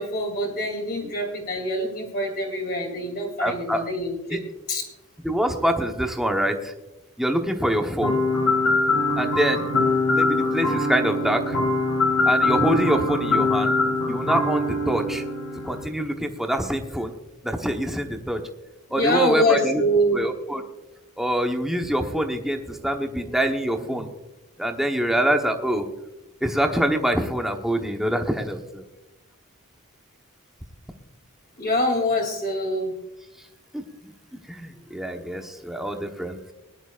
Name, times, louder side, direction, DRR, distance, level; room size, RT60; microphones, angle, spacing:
voice 1, 0.0-4.4 4.7-4.8 18.9-20.2 23.9-24.0 31.6-32.9, left 1 dB, 45° left, 1 dB, 2.9 m, -25 dB
voice 2, 3.4-3.8 4.3-4.4 5.2-6.7 7.2-8.2 9.2-9.7 10.1-11.6 12.3-13.8 14.1-15.2 15.6-17.1 17.4-18.4 18.9-19.8 20.1-20.6 21.2-24.1 24.6-25.9 26.4-28.8 33.7-36.4, right 1 dB, ahead, 3 dB, 1.1 m, -25 dB
sound 1, 8.0-15.9, left 2 dB, 80° left, 3.3 m, -23 dB
20.0 x 11.0 x 2.5 m, 0.96 s
head